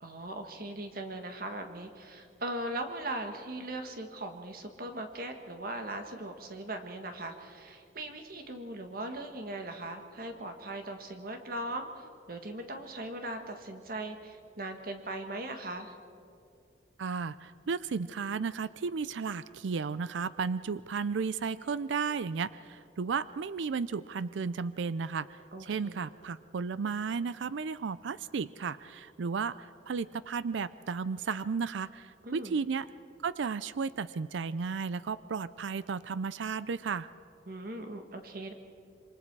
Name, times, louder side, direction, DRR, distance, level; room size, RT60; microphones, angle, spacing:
voice 1, 0.0-16.0 25.5-26.1 32.2-32.6 37.5-38.5, right 1 dB, 50° right, 5 dB, 1.6 m, -39 dB
voice 2, 17.0-25.4 25.7-32.9 33.2-37.1, right 5 dB, 75° right, 16 dB, 0.4 m, -34 dB
27.5 x 24.0 x 4.7 m, 2.5 s
head